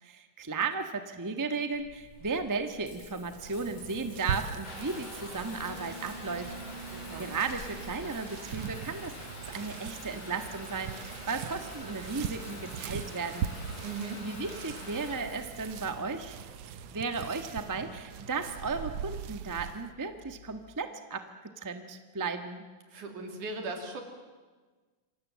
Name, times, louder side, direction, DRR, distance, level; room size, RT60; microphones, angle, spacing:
voice 1, 0.0-6.5 6.9-9.1 9.5-13.5 14.2-16.4 16.9-21.3 21.6-22.6, right 4 dB, 30° right, 7 dB, 0.3 m, -35 dB
Water tap faucet / Bathtub (filling or washing) / Trickle dribble, 1.7-20.6, left 1 dB, 55° left, 6.7 m, -46 dB
sound 1, 3.3-19.9, right 8 dB, 70° right, 2.0 m, -41 dB
voice 2, 6.9-7.3 13.8-14.2 22.9-24.0, right 3 dB, 85° right, 4 dB, 4.5 m, -38 dB
27.0 x 24.0 x 7.7 m, 1.4 s
omnidirectional pair, 3.4 m